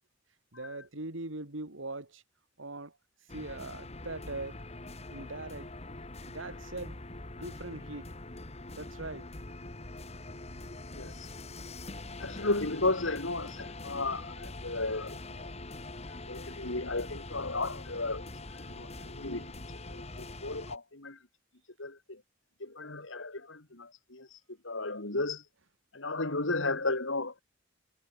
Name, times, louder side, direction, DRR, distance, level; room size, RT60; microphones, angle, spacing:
voice 1, 0.5-2.2 2.6-3.0 3.3-4.6 5.1-5.7 6.3-7.0 7.3-8.2 8.8-9.3 16.6-16.8, right 2 dB, 90° right, 3.0 m, -41 dB
sound 1, 3.3-20.8, left 2 dB, 35° left, 2.1 m, -44 dB
voice 2, 10.9-11.3 12.2-15.5 16.3-18.2 18.6-19.5 19.8-21.2 21.8-22.2 22.6-24.4 24.6-25.4 25.9-27.4, left 2 dB, 85° left, 3.3 m, -34 dB
head